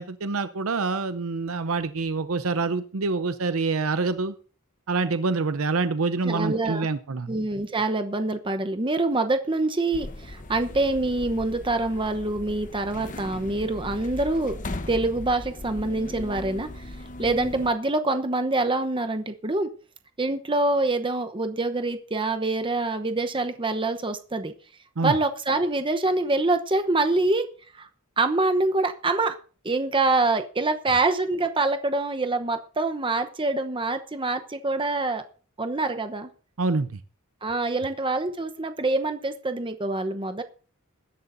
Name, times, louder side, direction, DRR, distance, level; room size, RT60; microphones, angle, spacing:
voice 1, 0.0-4.3 4.9-7.3 25.0-25.1 36.6-37.0, right 3 dB, 85° right, 11 dB, 0.7 m, -26 dB
voice 2, 6.2-6.9 7.3-14.6 14.9-16.9 17.2-19.7 20.2-24.5 25.0-27.5 27.7-27.9 28.2-29.4 29.6-35.2 35.6-36.3 37.4-40.4, right 2 dB, 25° right, 8 dB, 0.9 m, -25 dB
sound 1, 9.9-17.7, left 1 dB, 40° left, 1.0 m, -38 dB
21.0 x 11.0 x 2.7 m, 0.38 s
head